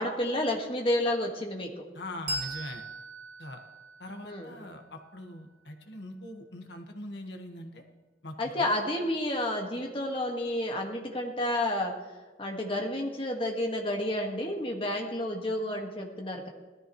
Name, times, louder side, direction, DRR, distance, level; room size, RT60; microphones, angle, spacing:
voice 1, 0.0-1.8 4.2-4.5 8.4-11.9 12.4-16.5, left 1 dB, 30° left, 1 dB, 1.8 m, -30 dB
voice 2, 1.9-2.8 3.4-3.6 4.0-7.8 8.2-8.7, left 1 dB, 65° left, 4 dB, 1.6 m, -42 dB
Bell, 2.3-5.3, right 1 dB, 35° right, 3.2 m, -40 dB
18.0 x 13.5 x 3.2 m, 1.2 s
head